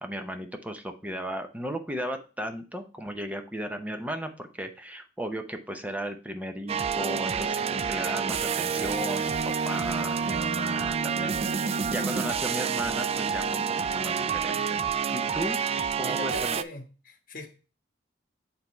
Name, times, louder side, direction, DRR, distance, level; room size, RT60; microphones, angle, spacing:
voice 1, 0.0-13.7 13.9-15.6 15.9-16.3, equal, 10° right, 6 dB, 0.7 m, -35 dB
sound 1, 6.7-16.6, right 6 dB, 35° right, 0.3 m, -28 dB
voice 2, 16.0-17.5, left 2 dB, 50° left, 5 dB, 1.4 m, -40 dB
8.4 x 3.4 x 4.4 m, 0.34 s
head